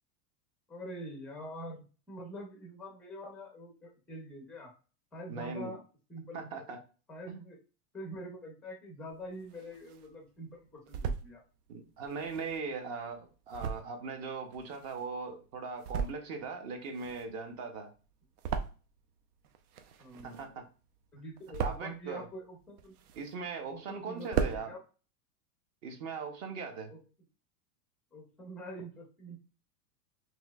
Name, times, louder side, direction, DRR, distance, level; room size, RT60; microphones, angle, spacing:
voice 1, 0.7-4.7 5.1-5.8 6.1-6.5 7.1-7.6 7.9-11.4 20.0-20.6 21.1-22.9 23.7-24.8 26.9-27.0 28.1-29.4, equal, 5° left, 1 dB, 0.5 m, -45 dB
voice 2, 5.3-5.8 6.3-6.8 7.3-7.4 11.7-17.9 20.2-20.7 21.6-22.2 23.2-24.7 25.8-26.9, right 4 dB, 35° right, 5 dB, 0.8 m, -39 dB
sound 1, 9.1-10.1 10.6-11.3 12.0-15.3 15.7-16.5 16.7-19.2 19.4-20.7 21.0-22.0 22.5-23.6 23.9-24.0 24.2-24.6, right 6 dB, 70° right, 0.8 m, -37 dB
6.0 x 2.7 x 2.3 m, 0.34 s
supercardioid pair, 160°, 47 cm